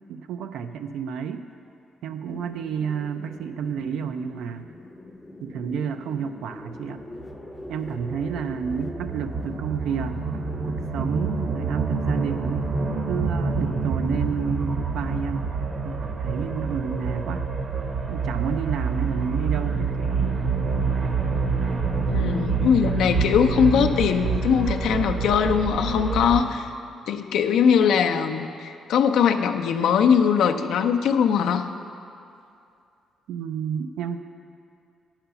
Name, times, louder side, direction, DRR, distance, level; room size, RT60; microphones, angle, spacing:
voice 1, 0.0-1.5 2.0-4.7 5.4-7.0 7.7-12.7 13.1-15.5 15.8-17.5 18.1-20.2 33.3-34.2, right 7 dB, 80° right, 8 dB, 0.3 m, -30 dB
sound 1, 2.3-12.7, left 1 dB, 10° left, 0.6 m, -43 dB
sound 2, 7.2-26.4, right 4 dB, 50° right, 0.8 m, -27 dB
voice 2, 22.1-26.7 27.1-31.7, left 7 dB, 80° left, 6 dB, 0.5 m, -21 dB
8.6 x 5.7 x 6.9 m, 2.5 s
cardioid pair, 90°, 0 cm